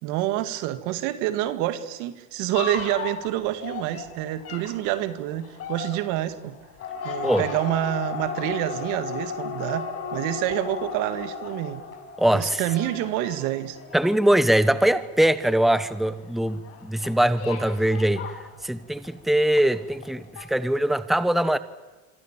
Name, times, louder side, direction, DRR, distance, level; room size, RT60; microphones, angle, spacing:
voice 1, 0.0-6.6 7.0-11.8 12.3-13.8, right 14 dB, 80° right, 2.1 m, -27 dB
sound 1, 2.5-19.2 19.5-20.1 20.3-20.4, left 6 dB, 50° left, 7.1 m, -36 dB
voice 2, 12.2-12.6 13.9-18.3 18.6-21.6, right 1 dB, ahead, 1.3 m, -22 dB
26.0 x 25.5 x 7.4 m
supercardioid pair, 105°, 30 cm